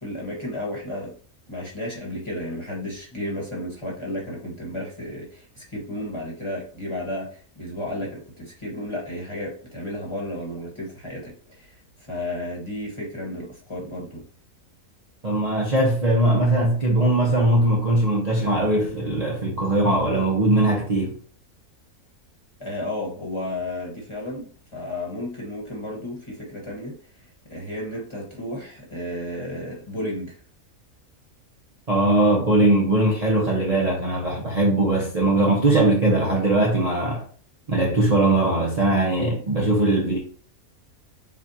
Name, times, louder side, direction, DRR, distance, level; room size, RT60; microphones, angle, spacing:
voice 1, 0.0-1.1 1.5-11.8 12.1-14.2 22.6-30.4, left 1 dB, 20° left, 1.4 m, -33 dB
voice 2, 15.2-21.2 31.9-37.2 37.7-40.2, right 2 dB, 35° right, 0.8 m, -20 dB
7.3 x 2.4 x 2.8 m
omnidirectional pair, 1.5 m